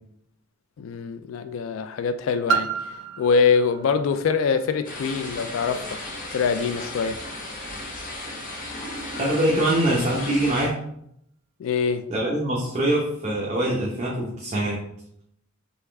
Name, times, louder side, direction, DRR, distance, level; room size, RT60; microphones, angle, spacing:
voice 1, 0.8-2.7 3.2-6.0 6.3-7.2 11.6-12.0, left 5 dB, 75° left, 10 dB, 0.3 m, -24 dB
Piano, 2.5-7.9 8.7-8.8, right 6 dB, 60° right, 0.3 m, -32 dB
sound 1, 4.8-10.7, left 1 dB, 40° left, 1.1 m, -35 dB
voice 2, 9.2-10.7 12.1-14.8, right 1 dB, 35° right, -5 dB, 0.8 m, -23 dB
4.0 x 3.5 x 3.4 m, 0.74 s
head